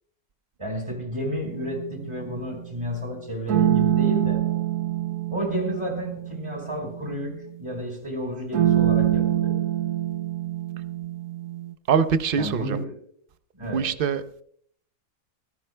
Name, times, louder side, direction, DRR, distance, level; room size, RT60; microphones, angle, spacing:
voice 1, 0.6-4.4 5.3-9.6 12.4-12.9 13.5-13.9, equal, 20° right, 4.7 m, -31 dB
sound 1, 1.4-2.4 3.5-7.5 8.5-11.7, right 11 dB, 90° right, 1.2 m, -25 dB
voice 2, 11.9-12.8 13.6-14.2, right 6 dB, 45° right, 0.8 m, -23 dB
24.5 x 16.0 x 2.2 m
omnidirectional pair, 1.6 m